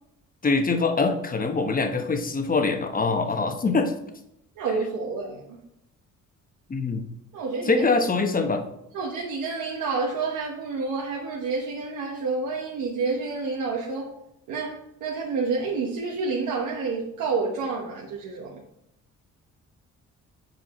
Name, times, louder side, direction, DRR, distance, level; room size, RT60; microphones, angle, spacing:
voice 1, 0.4-3.9 6.7-7.1 7.6-8.6, left 4 dB, 30° left, 6 dB, 1.0 m, -23 dB
voice 2, 4.6-5.6 7.3-7.9 8.9-14.1 14.5-18.6, right 4 dB, 80° right, -1 dB, 1.1 m, -29 dB
7.8 x 4.5 x 4.2 m, 0.82 s
cardioid pair, 90°, 30 cm